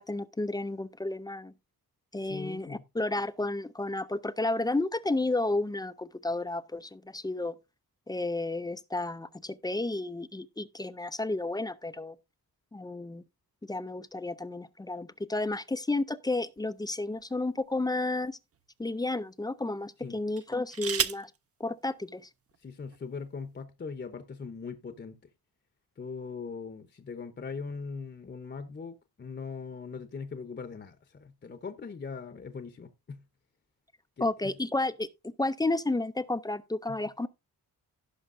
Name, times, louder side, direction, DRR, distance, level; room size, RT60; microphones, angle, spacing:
voice 1, 0.0-1.5 2.1-7.5 8.1-12.2 12.7-13.2 13.6-18.4 18.8-21.3 21.6-22.3 34.2-37.3, left 2 dB, 10° left, 0.4 m, -32 dB
voice 2, 2.2-2.8 20.0-20.2 22.6-25.2 26.0-33.2 34.2-34.5 36.9-37.0, left 5 dB, 30° left, 0.8 m, -40 dB
sound 1, 16.6-17.8 18.5-18.7 20.3-21.4 22.5-22.6 22.9-23.3, right 7 dB, 40° right, 0.6 m, -34 dB
17.0 x 5.7 x 2.5 m
wide cardioid pair, 135°, 37 cm